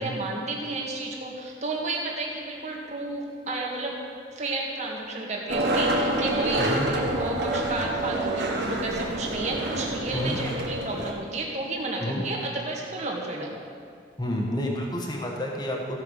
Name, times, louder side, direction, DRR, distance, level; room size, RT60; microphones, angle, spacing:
voice 1, 0.0-4.0 4.3-13.6, right 2 dB, 35° right, -2 dB, 1.7 m, -32 dB
Skateboard, 5.5-11.1, right 1 dB, 55° right, 1.5 m, -27 dB
voice 2, 6.6-6.9 10.1-10.4 12.0-12.2 14.2-16.0, left 1 dB, 20° left, 0 dB, 1.3 m, -29 dB
15.5 x 5.9 x 6.4 m, 2.2 s
head